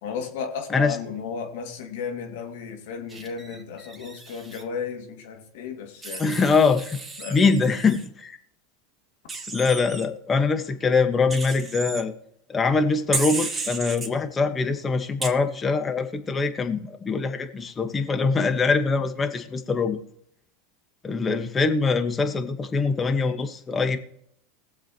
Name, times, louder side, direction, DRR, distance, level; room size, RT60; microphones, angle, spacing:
voice 1, 0.0-6.4 7.2-7.4, left 6 dB, 65° left, 3 dB, 2.4 m, -34 dB
Wild animals, 3.1-4.6 6.0-8.1 9.3-10.0 11.3-12.0 13.1-14.1 15.2-15.3, right 3 dB, 15° right, 1.9 m, -34 dB
voice 2, 6.2-7.0 7.3-8.4 9.5-12.1 12.5-20.0 21.0-24.0, left 4 dB, 20° left, 7 dB, 1.4 m, -23 dB
21.0 x 7.4 x 3.0 m, 0.70 s
hypercardioid pair, 95°, 0 cm